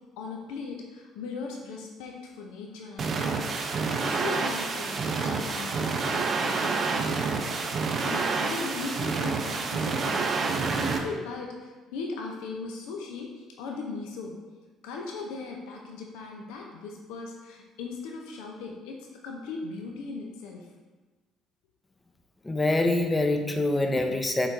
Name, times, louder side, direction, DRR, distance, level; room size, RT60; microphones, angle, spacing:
voice 1, 0.2-3.5 4.0-7.5 8.0-14.4 14.8-20.7, left 4 dB, 70° left, 1 dB, 0.5 m, -38 dB
sound 1, 3.0-11.0, right 4 dB, 45° right, 0.5 m, -28 dB
voice 2, 22.4-24.5, left 2 dB, 20° left, 5 dB, 0.5 m, -25 dB
4.4 x 3.8 x 2.5 m, 1.3 s
hypercardioid pair, 55°, 0 cm